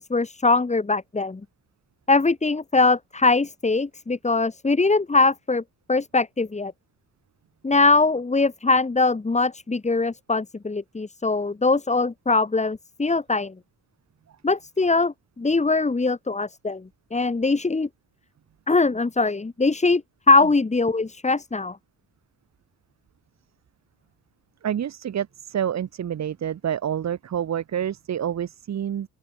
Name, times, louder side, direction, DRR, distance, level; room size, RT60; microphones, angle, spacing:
voice 1, 0.0-1.4 2.1-5.6 5.9-6.7 7.6-13.5 14.4-17.9 18.7-20.0 20.3-21.8, left 3 dB, 25° left, 6.8 m, -22 dB
voice 2, 24.6-29.1, right 9 dB, 60° right, 7.7 m, -28 dB
open air
cardioid pair, 90°, 30 cm